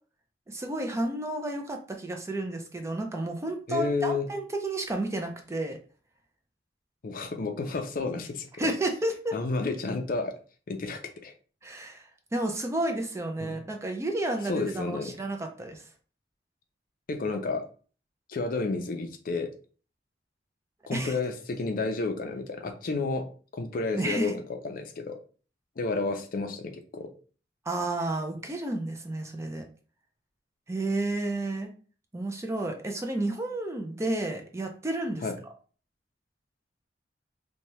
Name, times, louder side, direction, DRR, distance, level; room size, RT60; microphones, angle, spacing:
voice 1, 0.5-5.8 8.6-9.4 11.6-12.0 12.3-15.9 20.9-21.2 23.9-24.4 27.7-29.6 30.7-31.7 32.1-35.3, right 2 dB, 15° right, 4 dB, 0.4 m, -31 dB
voice 2, 3.7-4.3 7.0-8.7 9.3-10.3 10.7-11.3 13.4-13.6 14.5-15.1 17.1-17.6 18.3-19.5 20.9-23.3 23.5-25.2 25.8-27.1 35.2-35.4, left 3 dB, 55° left, 6 dB, 0.4 m, -31 dB
2.8 x 2.2 x 3.0 m, 0.39 s
head